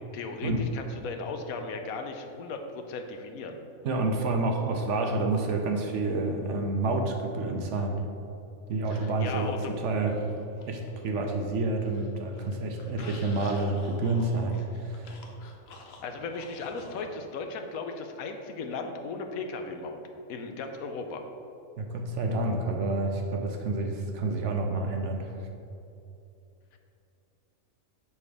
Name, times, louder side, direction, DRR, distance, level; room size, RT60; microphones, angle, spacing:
voice 1, 0.1-3.6 8.9-9.7 16.0-20.0 20.3-21.2, left 4 dB, 80° left, 5 dB, 1.1 m, -36 dB
voice 2, 3.8-8.0 8.7-9.5 9.8-10.3 10.7-15.1 21.8-25.3, right 2 dB, 65° right, 3 dB, 0.9 m, -29 dB
sound 1, 10.1-11.4 11.8-17.1, left 3 dB, 55° left, 0.8 m, -50 dB
6.9 x 4.3 x 4.8 m, 2.7 s
omnidirectional pair, 1.5 m